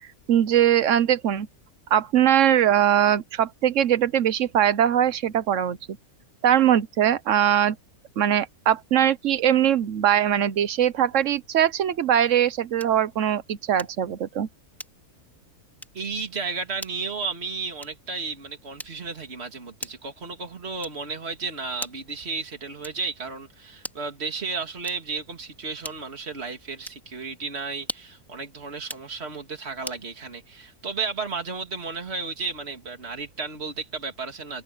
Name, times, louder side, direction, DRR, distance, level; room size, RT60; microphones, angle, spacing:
voice 1, 0.3-1.5 1.9-5.8 6.4-7.8 8.2-14.5, right 10 dB, 60° right, 1.1 m, -21 dB
sound 1, 12.8-13.1 13.8-14.1 14.8-15.2 15.8-16.1 16.8-17.1 17.8-18.1 18.8-19.2 19.8-20.2 20.8-21.2 21.8-22.2 22.8-23.2 23.8-24.2 24.8-25.2 25.8-26.2 26.8-27.1 27.8-28.2 28.8-29.1 29.8-30.1, equal, ahead, 2.6 m, -40 dB
voice 2, 15.9-34.6, right 4 dB, 45° right, 2.8 m, -33 dB
open air
omnidirectional pair, 1.6 m